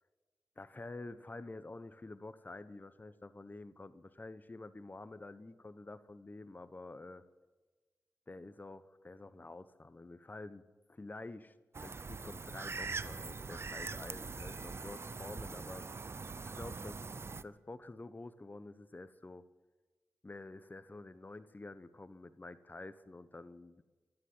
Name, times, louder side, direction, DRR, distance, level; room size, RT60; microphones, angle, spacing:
voice 1, 0.6-7.2 8.3-10.6 10.9-11.6 11.8-15.9 16.4-17.0 17.4-19.4 20.2-23.8, left 2 dB, 30° left, 14 dB, 1.0 m, -49 dB
sound 1, 11.7-17.4, right 4 dB, 50° right, 0.6 m, -43 dB
13.5 x 11.5 x 9.6 m, 1.3 s
cardioid pair, 45°, 6 cm